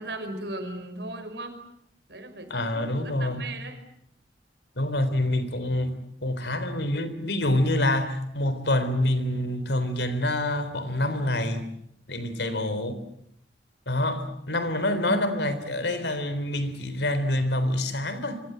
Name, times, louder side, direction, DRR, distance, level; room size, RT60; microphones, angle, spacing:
voice 1, 0.0-1.6 2.1-3.8, right 2 dB, 75° right, 5.6 m, -37 dB
voice 2, 2.5-3.5 4.8-11.7 12.1-13.0 13.9-18.4, left 1 dB, 80° left, 3.7 m, -26 dB
26.5 x 24.0 x 7.9 m
head